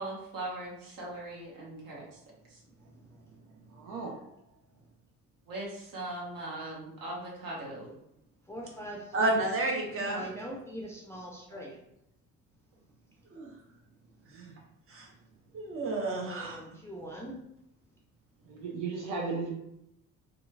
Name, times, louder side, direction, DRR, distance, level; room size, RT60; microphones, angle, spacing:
voice 1, 0.0-2.2 2.5-2.6 5.5-7.9, right 2 dB, 45° right, -3 dB, 1.1 m, -40 dB
voice 2, 3.7-4.2 11.5-11.6 14.3-14.5 18.5-19.5, right 4 dB, 65° right, -1 dB, 0.6 m, -36 dB
voice 3, 8.5-9.4 9.8-11.8 16.3-17.4, equal, 5° left, -3 dB, 0.5 m, -42 dB
voice 4, 9.1-10.2 13.3-13.5 14.9-15.1 15.5-16.6, right 2 dB, 30° right, 0 dB, 0.8 m, -30 dB
2.9 x 2.4 x 2.3 m, 0.80 s
figure-of-eight pair, 45°, 44 cm